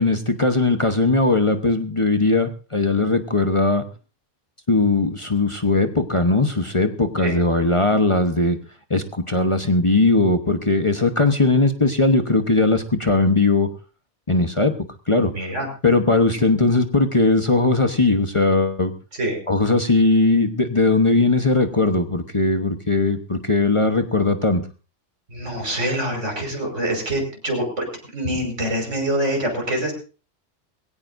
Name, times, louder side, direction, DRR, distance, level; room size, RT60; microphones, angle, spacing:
voice 1, 0.0-3.8 4.7-8.6 8.9-13.7 14.3-14.7 15.1-15.3 15.8-18.9 19.5-24.6, left 3 dB, 25° left, 7 dB, 1.1 m, -19 dB
voice 2, 15.3-15.7 19.2-19.4 25.3-27.9 28.1-29.9, right 1 dB, 80° right, 3 dB, 5.7 m, -25 dB
21.0 x 17.0 x 2.7 m, 0.34 s
omnidirectional pair, 1.2 m